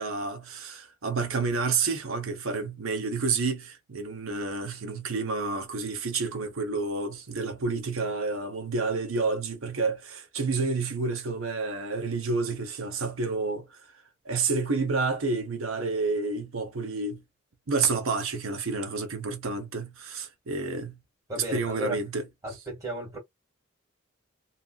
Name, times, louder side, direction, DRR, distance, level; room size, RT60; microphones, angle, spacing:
voice 1, 0.0-13.8 14.2-17.2 17.7-21.0 21.5-22.2, right 4 dB, 75° right, 0.9 m, -29 dB
voice 2, 21.3-22.0 22.4-23.2, equal, 15° right, 1.9 m, -34 dB
2.9 x 2.5 x 2.4 m
head